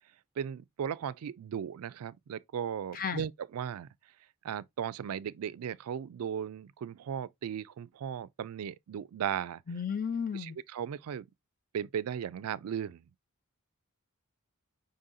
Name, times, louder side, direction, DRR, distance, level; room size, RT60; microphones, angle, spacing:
voice 1, 0.4-3.9 4.4-9.6 10.3-11.3 11.7-13.0, right 8 dB, 75° right, 0.3 m, -36 dB
voice 2, 2.9-3.2 9.7-10.6, left 6 dB, 40° left, 0.5 m, -33 dB
5.4 x 3.8 x 2.7 m
head